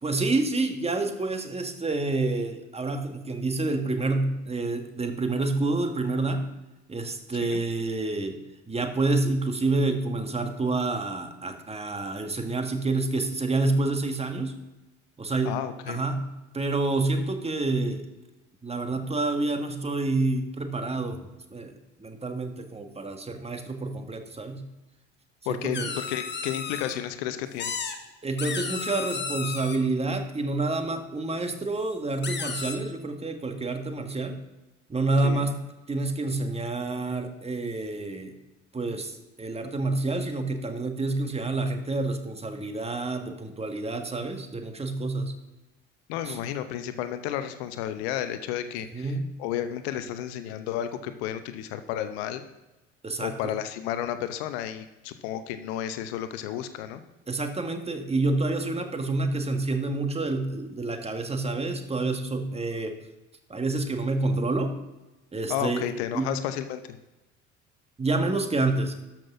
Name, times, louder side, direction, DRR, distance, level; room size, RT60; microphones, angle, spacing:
voice 1, 0.0-6.4 6.9-8.4 8.7-14.5 15.2-15.6 15.9-16.2 16.5-18.1 18.6-21.2 21.5-24.6 25.5-25.9 28.2-34.4 34.9-35.6 35.9-38.3 38.7-45.3 46.2-46.4 48.9-49.2 53.0-53.5 57.3-63.0 63.5-64.7 65.3-65.9 66.1-66.3 68.0-68.9, right 2 dB, 15° right, 6 dB, 1.6 m, -28 dB
voice 2, 15.4-16.0 25.5-27.7 35.2-35.5 46.1-49.1 49.4-52.4 53.2-57.0 65.5-66.8, left 11 dB, 60° left, 11 dB, 0.8 m, -32 dB
sound 1, 25.7-26.9 27.6-28.0 28.4-29.8 31.8-31.9 32.2-32.8, left 5 dB, 30° left, 1.5 m, -33 dB
12.5 x 6.1 x 5.9 m, 1.0 s
figure-of-eight pair, 60°, 36 cm